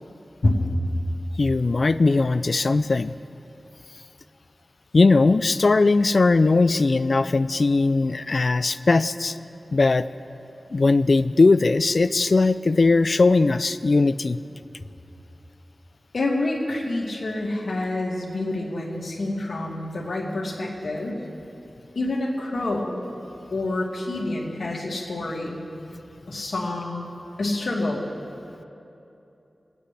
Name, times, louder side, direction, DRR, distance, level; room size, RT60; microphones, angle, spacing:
voice 1, 1.4-3.1 4.9-9.4 9.7-10.1 10.7-14.4, left 3 dB, 55° left, 13 dB, 0.3 m, -19 dB
voice 2, 16.1-21.2 22.0-23.0 23.5-25.6 26.3-27.1 27.4-28.0, left 2 dB, 70° left, -3 dB, 2.2 m, -27 dB
25.5 x 9.4 x 3.4 m, 2.8 s
wide cardioid pair, 95°, 0 cm